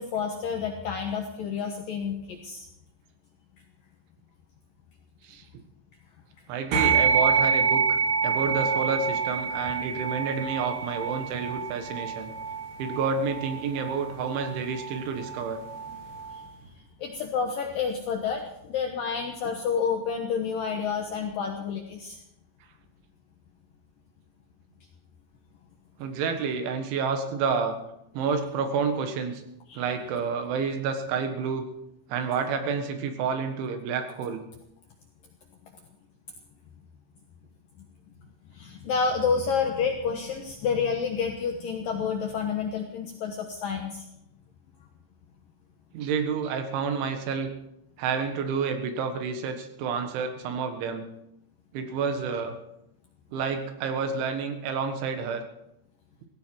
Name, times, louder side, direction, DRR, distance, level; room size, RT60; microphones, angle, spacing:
voice 1, 0.0-2.7 17.0-22.2 29.7-29.9 37.8-37.9 38.5-44.0, left 6 dB, 75° left, 3 dB, 2.1 m, -29 dB
voice 2, 6.5-12.3 12.8-15.6 26.0-27.8 28.1-29.4 29.8-31.7 32.1-34.4 45.9-47.5 48.0-51.1 51.7-52.6 53.3-55.4, right 5 dB, 75° right, 7 dB, 3.8 m, -29 dB
sound 1, 6.7-16.4, right 6 dB, 60° right, 5.2 m, -27 dB
16.0 x 16.0 x 4.6 m, 0.82 s
omnidirectional pair, 5.5 m